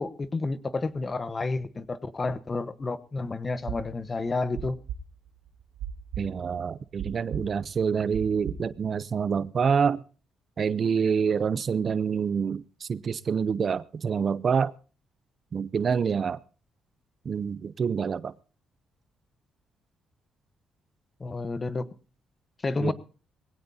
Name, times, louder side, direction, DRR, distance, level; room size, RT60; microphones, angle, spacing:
voice 1, 0.0-4.8 21.2-21.9 22.6-22.9, left 3 dB, 30° left, 1.0 m, -30 dB
sound 1, 3.7-8.8, right 9 dB, 85° right, 1.1 m, -37 dB
voice 2, 6.2-10.0 10.6-14.7 15.5-16.4 17.3-18.3 22.8-22.9, right 6 dB, 50° right, 0.6 m, -27 dB
20.5 x 17.0 x 2.7 m
cardioid pair, 90°, 0 cm